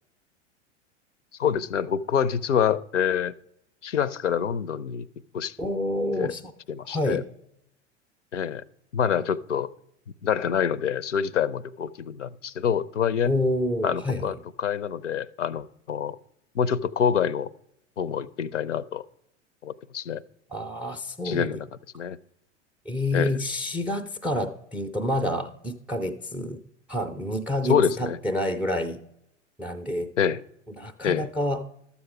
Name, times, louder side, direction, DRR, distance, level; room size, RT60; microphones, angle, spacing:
voice 1, 1.4-3.3 3.8-5.1 5.3-5.5 6.1-6.3 6.7-7.2 8.3-8.6 8.9-9.7 10.2-13.3 13.8-16.2 16.5-17.5 18.0-19.0 19.6-20.2 21.2-21.7 21.9-22.2 23.1-23.4 27.7-28.2 30.2-30.4 31.0-31.3, left 8 dB, 75° left, 19 dB, 0.6 m, -26 dB
voice 2, 5.6-6.4 6.8-7.2 13.3-14.3 20.5-21.5 22.9-26.6 26.9-29.0 29.6-30.1 30.7-31.6, left 1 dB, 5° right, 11 dB, 0.3 m, -28 dB
13.0 x 7.1 x 4.8 m, 0.78 s
figure-of-eight pair, 85°, 36 cm